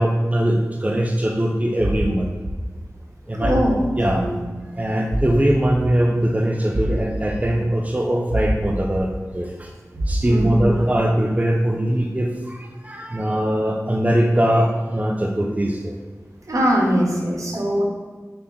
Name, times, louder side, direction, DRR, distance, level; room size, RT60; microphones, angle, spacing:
voice 1, 0.0-2.3 3.3-3.5 4.0-4.3 4.8-9.7 10.1-16.0, right 1 dB, 25° right, 1 dB, 0.8 m, -21 dB
sound 1, 1.8-2.0 2.4-2.6 3.4-3.7 4.1-4.2 5.1-5.3 5.7-5.8 6.7-6.9 7.3-7.4 8.3-8.6 8.9-9.0 9.9-10.2 10.6-10.7, right 1 dB, 50° right, 1.6 m, -24 dB
voice 2, 3.4-4.3 10.2-10.8 16.5-17.8, equal, 70° right, -1 dB, 1.8 m, -21 dB
7.7 x 3.7 x 6.1 m, 1.4 s
wide cardioid pair, 55°, 6 cm